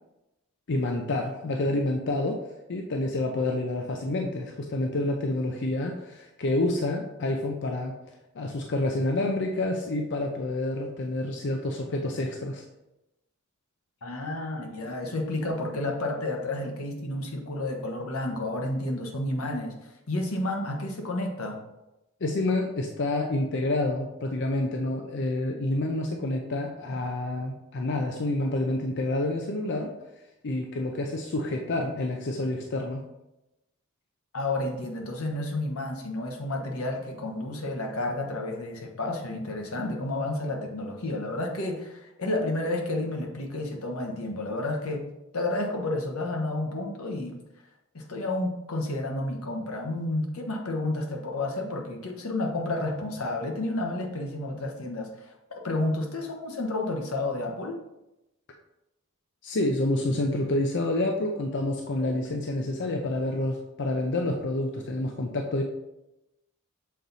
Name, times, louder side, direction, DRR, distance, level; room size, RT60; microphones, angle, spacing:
voice 1, 0.7-2.4 2.7-7.9 8.3-12.6 22.2-29.9 30.4-33.0 59.4-65.6, left 2 dB, 55° left, 2 dB, 0.5 m, -28 dB
voice 2, 14.0-19.8 20.1-21.6 34.3-45.1 45.3-47.4 47.9-57.8, left 2 dB, 80° left, 2 dB, 1.1 m, -31 dB
6.5 x 4.0 x 4.0 m, 0.94 s
head